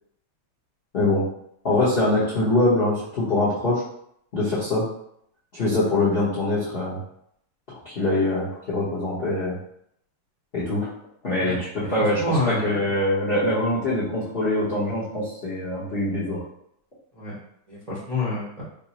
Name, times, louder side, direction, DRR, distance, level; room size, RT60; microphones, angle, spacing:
voice 1, 1.6-3.8 4.3-4.9 5.5-7.0 7.7-9.5 10.5-10.9 11.2-16.4, left 2 dB, 55° left, -9 dB, 0.6 m, -23 dB
voice 2, 12.1-12.8 17.2-17.4 17.7-18.6, left 2 dB, 35° right, -8 dB, 0.6 m, -27 dB
5.0 x 2.0 x 2.8 m, 0.72 s
omnidirectional pair, 2.4 m